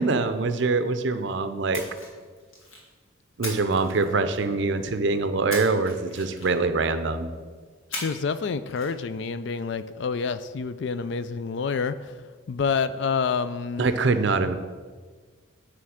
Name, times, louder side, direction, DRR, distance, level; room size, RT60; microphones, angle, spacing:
voice 1, 0.0-1.8 3.4-7.3 13.8-14.5, right 3 dB, 60° right, 10 dB, 0.5 m, -24 dB
Splash splatter, 1.7-2.9 3.4-4.6 5.5-6.8 7.9-8.4 8.7-8.9, left 2 dB, 75° left, 1.9 m, -38 dB
voice 2, 7.9-12.1 12.5-13.9, left 5 dB, 60° left, 13 dB, 0.3 m, -28 dB
9.3 x 3.3 x 6.3 m, 1.5 s
head